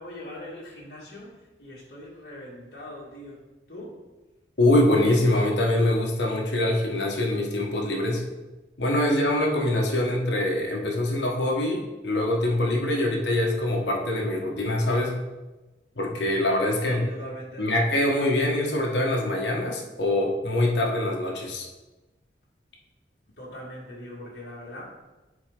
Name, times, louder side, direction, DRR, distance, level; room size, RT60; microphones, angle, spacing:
voice 1, 0.0-3.4 3.7-4.0 16.7-17.7 23.4-24.9, left 1 dB, 60° left, -6 dB, 2.2 m, -41 dB
voice 2, 4.6-8.2 8.8-15.1 16.0-17.0 17.6-21.7, left 1 dB, 80° left, 0 dB, 1.2 m, -24 dB
9.8 x 4.1 x 3.8 m, 1.1 s
head